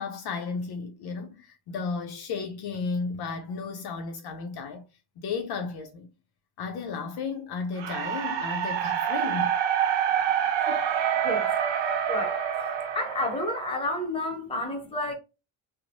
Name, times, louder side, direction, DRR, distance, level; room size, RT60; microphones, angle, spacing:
voice 1, 0.0-4.9 5.2-6.1 6.6-9.6, left 4 dB, 55° left, 0.5 m, -33 dB
sound 1, 7.8-13.9, right 9 dB, 65° right, 0.7 m, -27 dB
voice 2, 12.1-12.4 12.9-15.1, left 1 dB, 10° left, 0.7 m, -30 dB
2.9 x 2.0 x 2.6 m
cardioid pair, 105°, 48 cm